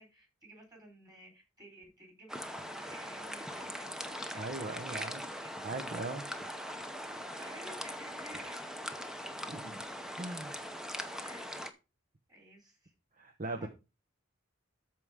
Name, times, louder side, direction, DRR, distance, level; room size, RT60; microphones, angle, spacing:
voice 1, 0.0-3.9 4.1-6.7 7.0-8.7 11.2-11.5 12.3-12.9 13.6-13.7, right 1 dB, 20° right, 2 dB, 4.2 m, -54 dB
sound 1, 2.3-11.7, equal, 5° right, 0.8 m, -41 dB
voice 2, 4.3-5.2 5.6-6.3 9.5-9.8 10.2-10.6 13.2-13.7, right 2 dB, 40° right, 5 dB, 0.9 m, -39 dB
13.5 x 4.8 x 3.6 m, 0.27 s
head